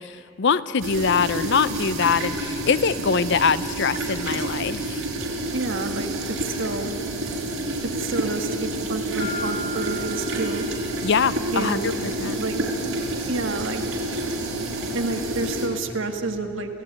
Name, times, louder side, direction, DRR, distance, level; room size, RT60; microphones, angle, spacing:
voice 1, 0.0-5.0 11.0-12.4, left 6 dB, 55° left, 16 dB, 0.5 m, -23 dB
sound 1, 0.8-15.7, right 1 dB, 85° right, 5.5 m, -29 dB
voice 2, 5.5-6.9 7.9-10.7 11.5-11.8 12.4-12.6 13.3-13.8 14.9-16.8, right 3 dB, 65° right, 5 dB, 2.0 m, -29 dB
Marimba xylophone, 9.2-11.4, equal, 25° left, 2.5 m, -36 dB
28.0 x 17.0 x 9.9 m, 2.9 s
head